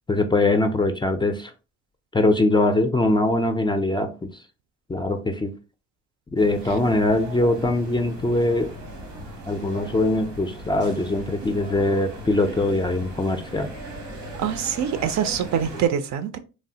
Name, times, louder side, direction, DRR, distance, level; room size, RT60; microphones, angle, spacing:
voice 1, 0.1-1.5 2.1-4.3 4.9-5.5 6.3-8.7 9.5-13.7, left 2 dB, 15° left, 0.3 m, -22 dB
sound 1, 6.4-15.9, right 1 dB, 90° right, 1.0 m, -38 dB
voice 2, 14.4-16.4, right 8 dB, 65° right, 0.5 m, -24 dB
3.1 x 2.0 x 2.7 m
cardioid pair, 90°, 30 cm